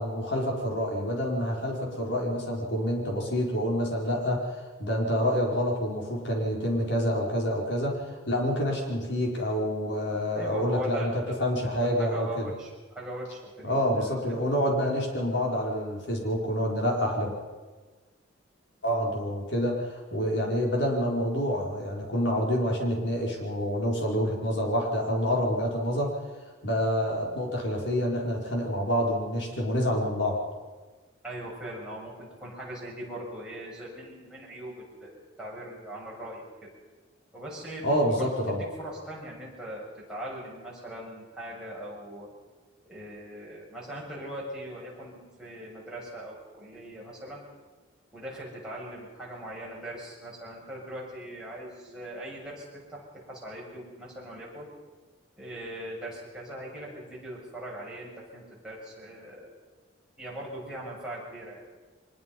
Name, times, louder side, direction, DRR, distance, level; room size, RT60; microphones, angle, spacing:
voice 1, 0.0-12.5 13.6-17.3 18.8-26.2 26.6-30.4 37.8-38.6, equal, 65° left, -1 dB, 5.3 m, -27 dB
voice 2, 10.3-11.5 11.8-13.8 14.3-14.5 31.2-36.7 37.3-38.0 38.5-42.3 42.9-47.4 48.1-54.7 55.4-59.5 60.2-61.6, right 1 dB, 5° right, -6 dB, 7.1 m, -40 dB
24.0 x 21.5 x 5.6 m, 1.3 s
head